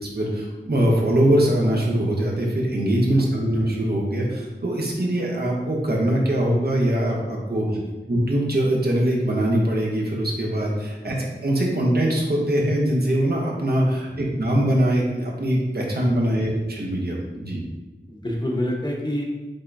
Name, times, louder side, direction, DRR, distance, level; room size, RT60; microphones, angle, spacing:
voice 1, 0.1-7.6 8.1-17.6, right 1 dB, 60° right, -2 dB, 1.0 m, -22 dB
voice 2, 18.1-19.2, left 1 dB, 25° left, -2 dB, 0.9 m, -28 dB
5.3 x 3.4 x 2.6 m, 1.2 s
wide cardioid pair, 65°, 18 cm